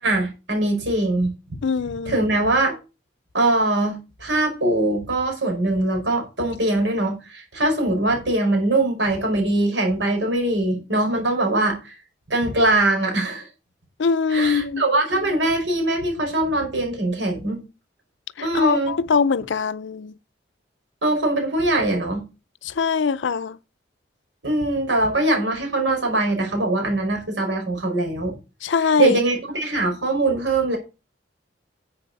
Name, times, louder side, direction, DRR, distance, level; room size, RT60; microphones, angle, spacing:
voice 1, 0.0-1.3 2.1-2.8 3.3-11.9 12.3-13.5 14.3-17.6 18.4-18.9 21.0-22.3 24.4-28.3 29.0-30.8, right 2 dB, 80° right, 5.2 m, -22 dB
voice 2, 1.6-2.3 14.0-14.8 18.4-20.1 22.6-23.6 28.6-29.2, left 5 dB, 80° left, 0.5 m, -22 dB
11.5 x 7.8 x 4.1 m
head